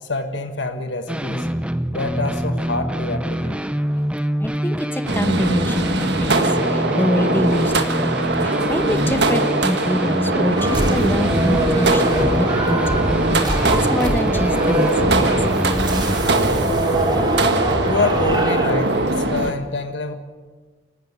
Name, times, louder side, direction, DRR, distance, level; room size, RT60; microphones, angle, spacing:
voice 1, 0.0-1.5 1.9-3.6 6.8-7.0 17.8-20.2, left 2 dB, 70° left, 6 dB, 1.6 m, -26 dB
sound 1, 1.1-16.2, equal, 5° right, 0.7 m, -26 dB
voice 2, 4.4-6.4 6.7-8.1 8.4-13.0 13.4-13.5 13.9-15.3, equal, 10° left, 10 dB, 1.0 m, -25 dB
sound 2, 5.1-19.5, right 2 dB, 60° right, 1.7 m, -21 dB
sound 3, 10.6-18.9, right 1 dB, 25° right, 2.9 m, -23 dB
28.0 x 13.0 x 8.1 m, 1.4 s
head